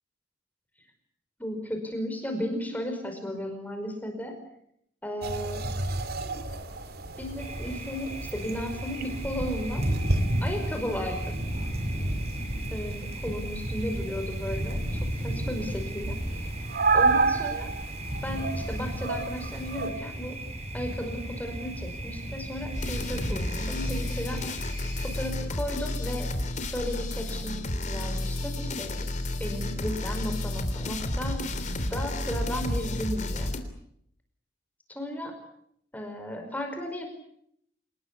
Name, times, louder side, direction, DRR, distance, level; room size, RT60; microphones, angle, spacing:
voice 1, 1.4-4.4 5.0-5.6 7.2-9.8 10.4-11.4 12.7-16.2 16.9-17.7 18.2-20.4 20.7-24.7 25.0-26.3 26.7-29.1 29.4-31.4 31.9-33.5 34.9-35.3 35.9-37.1, equal, 10° left, 4 dB, 5.2 m, -35 dB
sound 1, 5.2-19.9, right 3 dB, 60° right, 2.6 m, -32 dB
Thunder, 7.4-25.3, right 1 dB, 35° right, 5.9 m, -34 dB
sound 2, 22.7-33.6, left 1 dB, 40° left, 3.3 m, -31 dB
28.0 x 20.5 x 8.5 m, 0.71 s
head